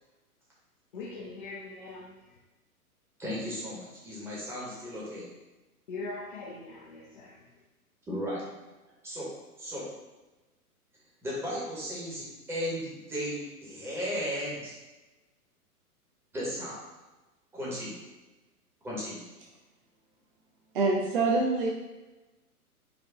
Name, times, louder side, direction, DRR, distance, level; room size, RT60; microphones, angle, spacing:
voice 1, 0.9-2.1 5.9-7.3, left 3 dB, 35° left, -2 dB, 0.4 m, -41 dB
voice 2, 3.2-5.3 8.1-8.4 9.0-9.3 9.6-9.8 11.2-14.7 16.3-16.8 17.5-18.0 18.8-19.2, equal, 5° right, -7 dB, 0.8 m, -35 dB
voice 3, 20.7-21.7, right 3 dB, 35° right, -1 dB, 0.5 m, -25 dB
4.9 x 2.3 x 3.5 m, 1.1 s
figure-of-eight pair, 110°, 46 cm